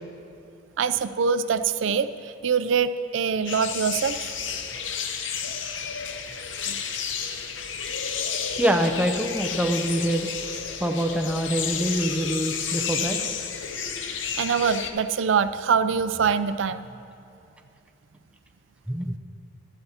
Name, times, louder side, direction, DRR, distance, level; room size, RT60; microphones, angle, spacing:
voice 1, 0.8-4.3 6.7-6.8 14.4-16.9, right 6 dB, 80° right, 12 dB, 0.4 m, -24 dB
sound 1, 3.5-14.9, left 7 dB, 75° left, 0.7 m, -31 dB
voice 2, 8.6-10.3 10.8-13.2 18.9-19.2, equal, 5° right, 3 dB, 0.5 m, -25 dB
15.5 x 12.0 x 2.8 m, 2.6 s
head